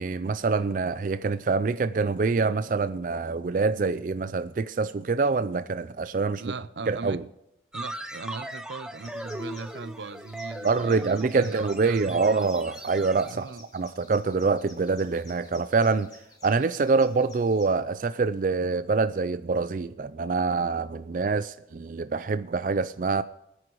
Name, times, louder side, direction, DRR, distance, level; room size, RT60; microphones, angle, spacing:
voice 1, 0.0-6.4 6.9-7.2 10.6-13.5 13.7-16.1 16.4-23.2, right 4 dB, 50° right, 0.4 m, -25 dB
voice 2, 6.4-7.2 7.7-12.3 13.3-13.6, right 4 dB, 85° right, 0.7 m, -39 dB
sound 1, 7.7-13.3, right 1 dB, 5° right, 0.7 m, -39 dB
sound 2, 9.0-17.7, left 2 dB, 20° left, 2.3 m, -54 dB
20.5 x 9.9 x 3.0 m
head